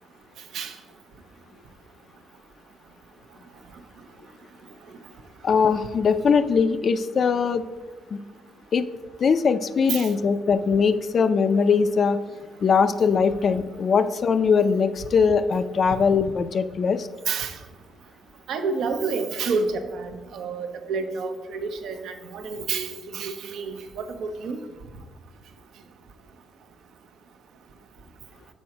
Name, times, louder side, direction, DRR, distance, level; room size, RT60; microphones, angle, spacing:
voice 1, 5.4-7.6 8.1-8.2 8.7-8.9 9.2-12.2 12.6-17.1, left 5 dB, 50° left, 10 dB, 0.4 m, -21 dB
voice 2, 18.5-24.6, right 4 dB, 75° right, 7 dB, 0.7 m, -29 dB
6.2 x 4.3 x 5.8 m, 1.3 s
cardioid pair, 90°, 0 cm